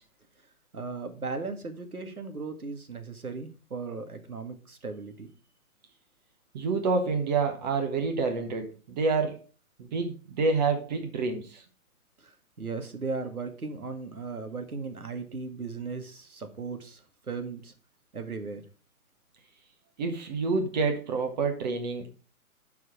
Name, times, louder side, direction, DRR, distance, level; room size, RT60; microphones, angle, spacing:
voice 1, 0.7-5.3 12.6-17.0 17.3-17.7 18.1-18.6, right 4 dB, 80° right, 7 dB, 2.0 m, -37 dB
voice 2, 6.5-9.4 9.8-11.6 20.0-22.2, right 4 dB, 30° right, 4 dB, 1.5 m, -28 dB
11.0 x 4.9 x 5.0 m, 0.37 s
figure-of-eight pair, 135°, 44 cm